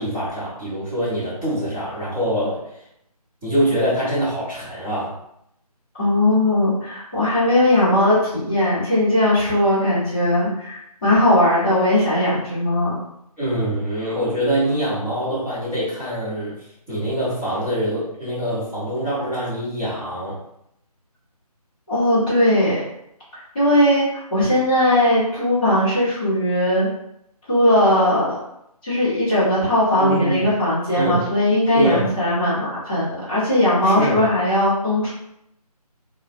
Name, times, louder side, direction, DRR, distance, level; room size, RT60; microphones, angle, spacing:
voice 1, 0.0-2.6 3.4-5.1 13.4-16.5 16.9-20.4 30.0-30.4 30.9-31.2 31.7-32.1 33.8-34.3, right 1 dB, 10° right, -15 dB, 0.9 m, -24 dB
voice 2, 6.0-13.0 21.9-22.8 23.5-26.9 27.5-28.3 28.8-35.1, left 1 dB, 10° left, -15 dB, 0.8 m, -19 dB
2.3 x 2.1 x 2.5 m, 0.79 s
figure-of-eight pair, 160°, 20 cm